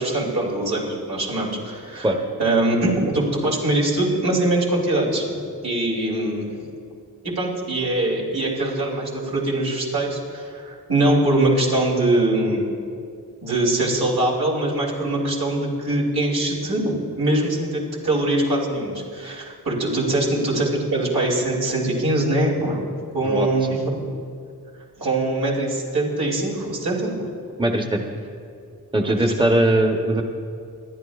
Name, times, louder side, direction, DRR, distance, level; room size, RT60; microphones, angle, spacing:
voice 1, 0.0-2.1 2.4-6.5 7.2-12.7 13.4-22.8 23.1-24.0 25.0-27.3 29.1-29.5, right 1 dB, 80° right, -5 dB, 3.0 m, -22 dB
voice 2, 27.6-28.0 28.9-30.2, right 1 dB, 15° right, 3 dB, 1.0 m, -20 dB
26.0 x 10.5 x 2.4 m, 2.4 s
cardioid pair, 55°, 37 cm